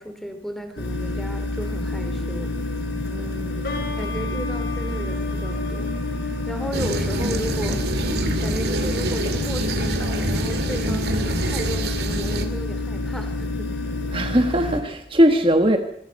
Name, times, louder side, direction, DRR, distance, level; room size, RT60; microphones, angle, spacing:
voice 1, 0.0-2.6 4.0-6.0 6.5-7.8 8.4-13.7, equal, ahead, 7 dB, 2.9 m, -34 dB
sound 1, 0.8-14.8, left 2 dB, 70° left, 4.7 m, -28 dB
voice 2, 3.1-4.0 14.1-15.8, equal, 30° right, 5 dB, 1.5 m, -20 dB
sound 2, 3.6-9.1, left 2 dB, 55° left, 5.8 m, -36 dB
sound 3, 6.7-12.4, right 1 dB, 60° right, 2.7 m, -26 dB
26.5 x 22.5 x 5.4 m, 0.66 s
head